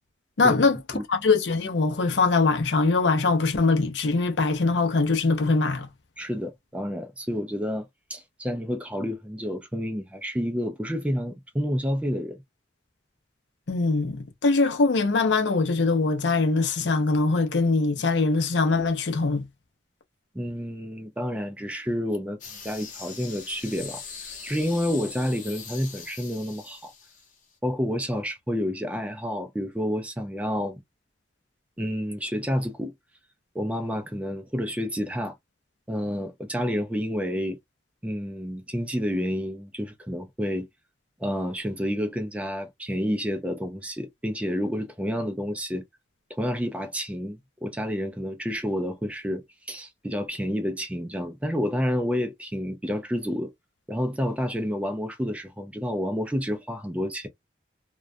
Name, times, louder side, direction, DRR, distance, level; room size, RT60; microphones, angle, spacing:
voice 1, 0.4-5.9 13.7-19.5, left 3 dB, 80° left, 0.6 m, -22 dB
voice 2, 6.2-12.4 20.3-22.4 22.6-26.9 27.6-30.8 31.8-32.9 33.5-35.4 35.9-37.6 38.0-40.7 41.2-45.8 46.3-53.5 53.9-57.3, equal, 5° right, 0.3 m, -29 dB
sound 1, 22.4-27.5, left 6 dB, 45° left, 0.9 m, -42 dB
2.3 x 2.1 x 2.5 m
head